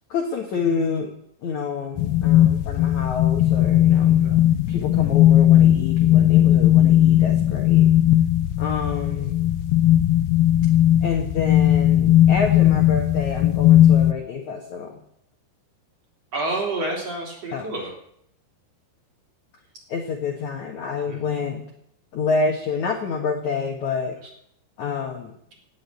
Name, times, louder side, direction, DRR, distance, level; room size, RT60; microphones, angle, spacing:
voice 1, 0.1-1.1 1.4-4.3 4.7-7.9 8.6-9.4 11.0-15.0 17.5-17.7 19.9-21.7 22.1-24.2 24.8-25.3, left 5 dB, 60° left, 2 dB, 2.0 m, -28 dB
sound 1, 2.0-14.1, left 12 dB, 85° left, 2.2 m, -17 dB
voice 2, 16.3-17.9 21.1-21.4, right 2 dB, 35° right, 0 dB, 3.9 m, -29 dB
17.5 x 7.5 x 9.7 m, 0.71 s
omnidirectional pair, 5.3 m